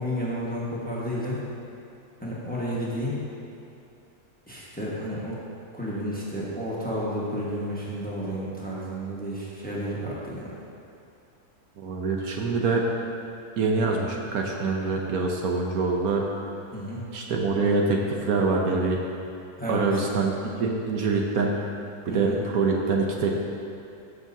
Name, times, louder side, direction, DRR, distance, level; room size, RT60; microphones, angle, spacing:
voice 1, 0.0-1.4 2.2-3.2 4.5-5.4 5.7-10.5 16.7-17.1 19.6-20.0 22.1-22.4, equal, 5° left, -7 dB, 1.2 m, -31 dB
voice 2, 11.8-12.8 13.6-16.2 17.1-19.0 19.7-20.3 20.6-21.6 22.1-23.4, right 4 dB, 70° right, 0 dB, 1.2 m, -25 dB
13.0 x 6.3 x 2.8 m, 2.6 s
omnidirectional pair, 1.6 m